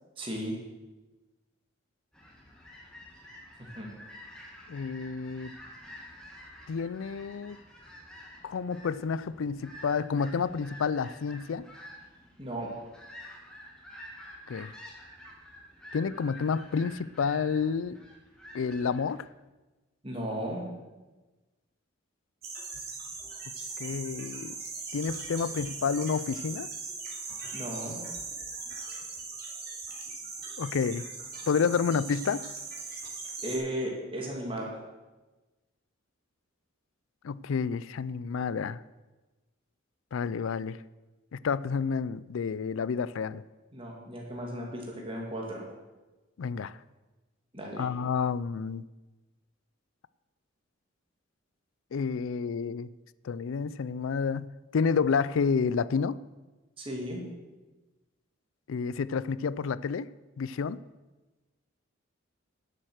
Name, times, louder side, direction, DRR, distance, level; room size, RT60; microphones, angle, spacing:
voice 1, 0.2-0.6 3.6-3.9 12.4-12.7 20.0-20.7 27.5-28.0 32.9-33.0 33.4-34.7 43.7-45.6 47.5-47.9 56.8-57.2, equal, 25° right, -1 dB, 2.4 m, -35 dB
sound 1, 2.1-19.2, equal, 5° left, 1.9 m, -49 dB
voice 2, 4.7-5.5 6.7-7.6 8.4-11.7 14.5-14.7 15.9-18.0 18.5-19.3 23.8-24.5 24.9-26.7 30.6-31.1 31.5-32.4 37.2-38.8 40.1-40.8 41.3-43.4 46.4-46.8 47.8-48.8 51.9-52.9 53.2-56.2 58.7-60.1 60.4-60.8, left 5 dB, 80° left, 18 dB, 0.4 m, -30 dB
sound 2, 22.4-33.6, right 4 dB, 50° right, 2.7 m, -39 dB
11.0 x 7.6 x 6.4 m, 1.2 s
head